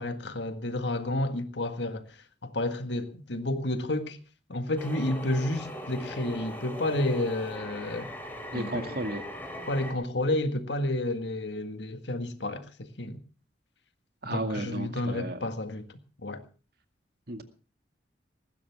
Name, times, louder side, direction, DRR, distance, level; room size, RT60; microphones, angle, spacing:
voice 1, 0.0-2.1 2.4-4.2 4.5-8.1 8.5-8.9 9.7-13.2 14.2-16.4, left 1 dB, 75° left, 1.8 m, -31 dB
sound 1, 4.8-9.9, equal, 10° left, 3.5 m, -40 dB
voice 2, 8.5-9.2 14.2-15.4 17.3-17.4, right 1 dB, 55° right, 2.2 m, -33 dB
19.5 x 15.5 x 3.6 m
head